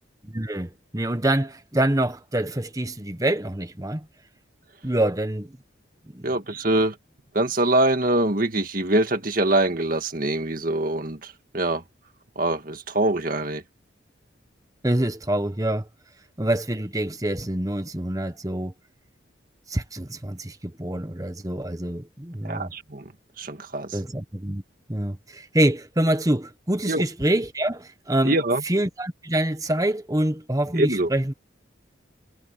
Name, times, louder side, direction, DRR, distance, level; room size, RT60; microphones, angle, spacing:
voice 1, 0.2-4.1 4.8-5.6 6.1-6.3 14.8-15.9 16.4-18.7 19.7-22.7 23.9-24.6 24.9-28.4 28.6-31.3, right 1 dB, 20° right, 1.3 m, -26 dB
voice 2, 6.2-7.0 7.3-11.8 12.4-13.6 22.4-23.0 23.4-24.0 26.9-27.0 28.2-28.6 30.7-31.1, right 1 dB, 45° right, 1.9 m, -24 dB
head